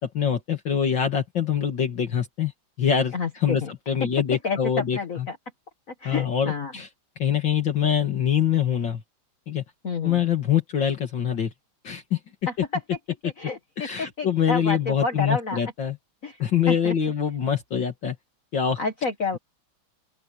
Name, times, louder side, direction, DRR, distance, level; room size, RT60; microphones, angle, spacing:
voice 1, 0.0-2.5 2.8-5.3 6.0-6.9 7.2-9.0 9.5-9.6 10.0-11.5 11.8-12.2 13.8-16.0 16.4-18.2 18.5-18.8, left 8 dB, 60° left, 2.6 m, -24 dB
voice 2, 3.1-3.7 4.4-5.4 6.0-6.7 9.8-10.2 12.5-12.6 13.2-15.6 16.2-16.4 16.7-16.9 18.8-19.4, left 4 dB, 40° left, 1.7 m, -29 dB
open air
omnidirectional pair, 2.3 m